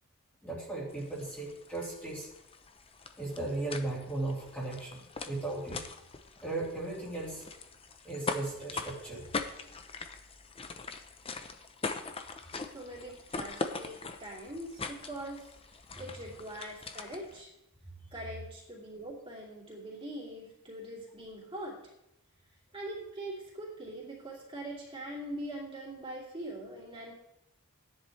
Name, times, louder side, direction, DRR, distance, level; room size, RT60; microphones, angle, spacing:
voice 1, 0.4-2.3 3.2-5.0 5.2-5.8 6.4-7.4 8.0-9.2, right 2 dB, 5° left, -6 dB, 2.9 m, -36 dB
sound 1, 0.9-17.4, left 3 dB, 25° left, 0.7 m, -42 dB
voice 2, 12.7-15.5 16.0-17.5 18.1-21.8 22.7-27.1, right 1 dB, 25° right, -5 dB, 2.8 m, -42 dB
14.0 x 10.5 x 3.3 m, 0.84 s
head